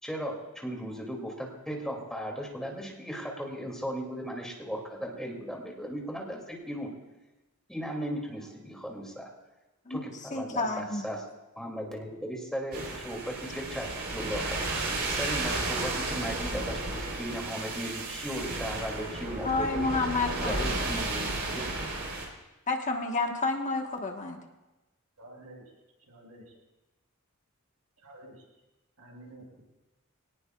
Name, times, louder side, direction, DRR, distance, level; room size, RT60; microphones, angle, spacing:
voice 1, 0.0-6.9 7.7-9.2 9.9-10.6 11.0-11.2 11.6-14.6 15.1-20.0 20.4-21.3 21.5-21.7, equal, 5° left, -1 dB, 2.7 m, -36 dB
voice 2, 10.3-11.1 19.4-20.8 22.7-24.4, left 3 dB, 35° left, 2 dB, 1.4 m, -30 dB
sound 1, 12.7-22.3, right 2 dB, 50° right, 4.1 m, -33 dB
voice 3, 25.2-25.7 26.1-26.6 28.0-28.5 29.0-29.6, right 1 dB, 85° right, -2 dB, 5.7 m, -50 dB
23.5 x 18.5 x 2.4 m, 1.1 s
head